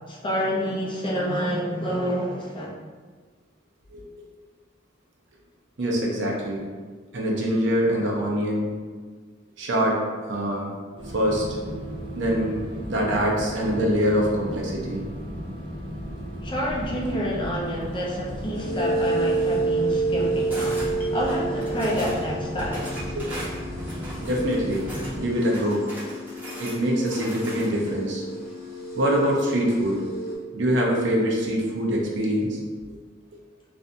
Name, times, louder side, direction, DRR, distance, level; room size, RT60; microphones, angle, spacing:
voice 1, 0.1-2.7 16.4-22.9, equal, 25° left, -4 dB, 0.5 m, -28 dB
voice 2, 5.8-6.6 7.1-8.7 9.6-10.0 10.3-10.7 11.1-11.4 12.2-15.0 24.2-24.9 25.2-25.8 26.6-28.2 28.9-30.0 30.5-32.6, equal, 65° right, -3 dB, 0.7 m, -24 dB
sound 1, 11.0-25.3, equal, 25° right, 0.5 m, -35 dB
sound 2, 18.5-30.4, right 3 dB, 55° left, 0.9 m, -30 dB
sound 3, 20.5-20.9 21.3-22.2 22.6-25.1 25.4-27.9, right 1 dB, 10° right, 0.9 m, -39 dB
3.2 x 2.6 x 2.6 m, 1.5 s
head